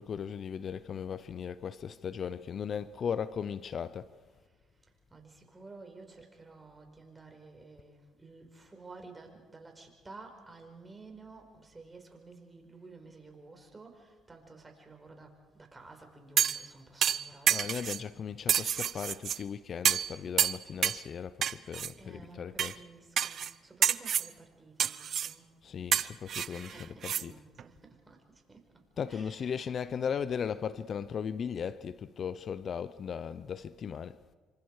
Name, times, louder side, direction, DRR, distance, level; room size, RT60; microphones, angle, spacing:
voice 1, 0.0-4.1 17.5-21.4 21.7-22.8 25.6-27.4 29.0-34.2, left 7 dB, 55° left, 0.7 m, -37 dB
voice 2, 5.1-17.6 22.0-25.5 26.5-28.2 28.5-28.6 29.1-29.7, right 3 dB, 25° right, 5.0 m, -52 dB
sound 1, 16.4-16.7 17.0-18.0 18.5-19.4 19.9-20.1 20.4-21.0 21.4-21.9 22.6-22.7 23.2-23.5 23.8-24.3 24.8-25.3 25.9-27.2 27.6-27.7, right 9 dB, 60° right, 0.6 m, -28 dB
27.0 x 25.5 x 4.9 m
supercardioid pair, 70°, 0 cm